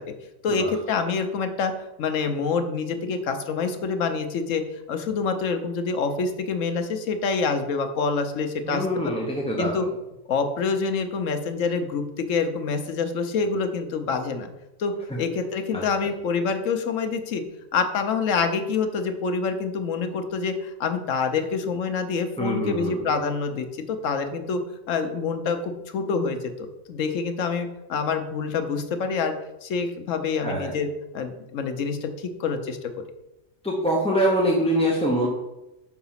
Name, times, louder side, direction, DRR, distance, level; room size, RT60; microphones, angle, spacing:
voice 1, 0.4-4.6 4.9-9.1 9.6-9.9 10.3-14.5 14.8-17.4 17.7-24.6 24.9-29.3 29.6-30.9 31.1-32.9, left 5 dB, 75° left, 7 dB, 1.1 m, -26 dB
voice 2, 8.6-9.8 15.1-15.2 15.7-15.8 22.4-23.1 30.4-30.8 33.6-35.3, equal, 5° left, -2 dB, 0.7 m, -24 dB
5.9 x 4.7 x 5.6 m, 0.95 s
omnidirectional pair, 1.4 m